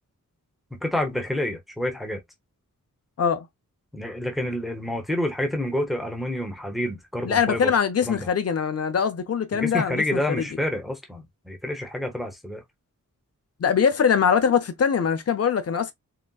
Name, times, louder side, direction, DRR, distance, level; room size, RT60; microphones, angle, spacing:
voice 1, 0.7-2.2 3.9-7.7 8.0-8.3 9.5-12.6, left 1 dB, ahead, 0.8 m, -28 dB
voice 2, 7.2-10.5 13.6-15.9, left 7 dB, 50° left, 0.6 m, -22 dB
3.9 x 2.1 x 2.3 m
wide cardioid pair, 125°, 32 cm